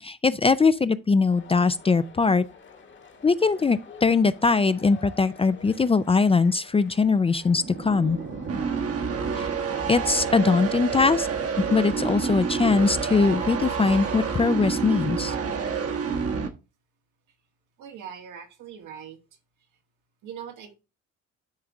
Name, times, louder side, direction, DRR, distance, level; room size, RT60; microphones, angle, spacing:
voice 1, 0.0-2.4 3.2-8.2 9.4-9.5 9.9-11.3 11.7-15.3, left 4 dB, 20° left, 0.4 m, -21 dB
sound 1, 1.3-10.5, left 4 dB, 40° left, 1.3 m, -48 dB
sound 2, 7.5-16.5, right 6 dB, 50° right, 1.1 m, -28 dB
voice 2, 17.8-19.2 20.2-20.8, right 8 dB, 80° right, 1.6 m, -41 dB
10.5 x 3.5 x 3.8 m
cardioid pair, 90°, 30 cm